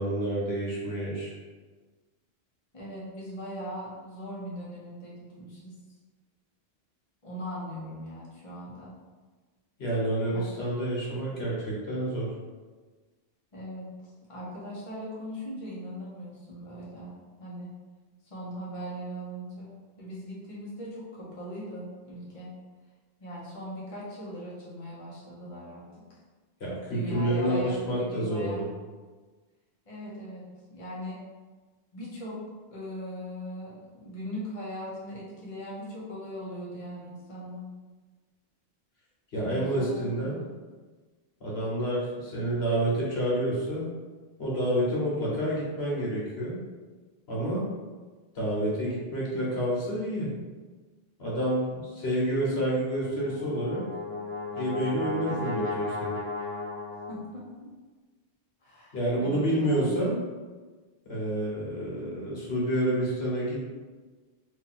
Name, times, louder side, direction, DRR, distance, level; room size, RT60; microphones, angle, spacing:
voice 1, 0.0-1.3 9.8-12.3 26.6-28.7 39.3-40.4 41.4-43.9 44.4-46.6 47.3-47.7 48.3-50.3 51.2-53.8 54.5-56.2 58.9-60.2 61.0-63.7, right 1 dB, 85° left, -6 dB, 1.4 m, -29 dB
voice 2, 2.7-5.8 7.2-8.9 10.3-10.5 13.5-13.9 14.3-17.1 17.4-17.7 18.2-22.5 23.2-25.9 26.9-28.6 29.9-31.2 31.9-32.4 32.7-37.7 39.4-40.4 57.1-57.7 58.6-59.9, equal, 35° left, -7 dB, 1.0 m, -40 dB
Brass instrument, 53.1-57.4, left 3 dB, 15° left, 0.7 m, -35 dB
2.8 x 2.7 x 4.1 m, 1.4 s
omnidirectional pair, 1.0 m